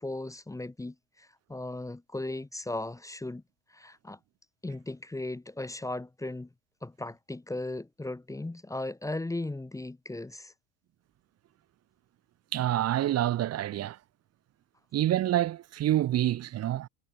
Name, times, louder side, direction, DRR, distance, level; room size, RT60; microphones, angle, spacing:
voice 1, 0.0-3.4 3.7-4.2 4.6-6.5 6.8-10.5, left 2 dB, 5° left, 1.7 m, -37 dB
voice 2, 12.5-14.0 14.9-16.9, right 13 dB, 30° right, 1.0 m, -27 dB
supercardioid pair, 130°, 48 cm